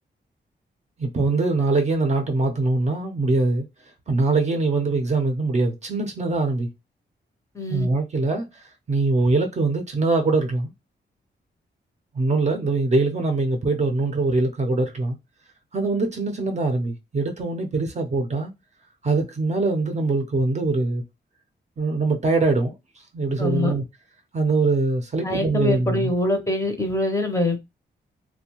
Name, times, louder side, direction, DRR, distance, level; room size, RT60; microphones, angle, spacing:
voice 1, 1.0-3.7 4.1-6.7 7.7-10.7 12.1-15.2 15.7-18.5 19.0-21.0 21.8-22.7 23.1-23.8 24.3-26.1, right 3 dB, 40° right, 0.5 m, -23 dB
voice 2, 7.5-7.9 23.4-23.7 25.2-27.6, left 1 dB, 15° left, 0.6 m, -24 dB
2.6 x 2.1 x 2.8 m
wide cardioid pair, 125°, 18 cm